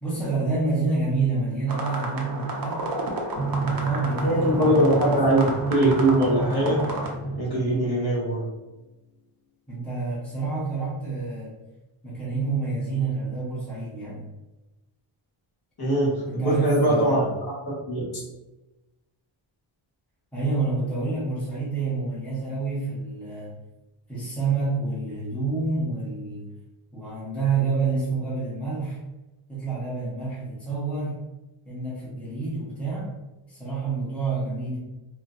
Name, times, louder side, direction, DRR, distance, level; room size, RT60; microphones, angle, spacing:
voice 1, 0.0-2.9 3.4-5.4 9.7-11.5 12.0-14.3 16.3-17.3 20.3-23.5 24.1-26.5 26.9-29.0 29.5-31.2 31.6-33.1 33.5-34.8, right 3 dB, 5° left, -7 dB, 0.9 m, -28 dB
sound 1, 1.7-7.1, right 1 dB, 45° right, 0.7 m, -32 dB
Drum, 3.3-8.4, right 3 dB, 70° left, 1.4 m, -30 dB
voice 2, 4.2-5.4 5.7-6.8 7.4-8.4 15.8-17.2 17.9-18.0, right 1 dB, 50° left, -6 dB, 1.3 m, -22 dB
4.4 x 2.2 x 2.4 m, 1.0 s
wide cardioid pair, 155°, 49 cm